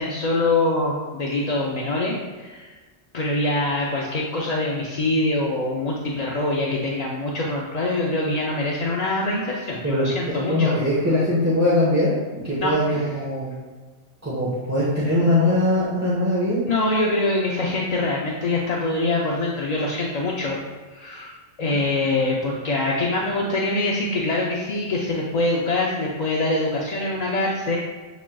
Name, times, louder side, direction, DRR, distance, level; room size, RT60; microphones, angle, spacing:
voice 1, 0.0-2.7 3.1-10.7 12.6-13.1 16.7-20.6 20.9-21.3 21.6-27.8, left 2 dB, 50° left, -3 dB, 0.5 m, -24 dB
voice 2, 9.8-13.6 14.2-16.6 21.6-21.8, left 1 dB, 15° right, -9 dB, 0.9 m, -21 dB
7.1 x 3.1 x 2.2 m, 1.4 s
omnidirectional pair, 1.2 m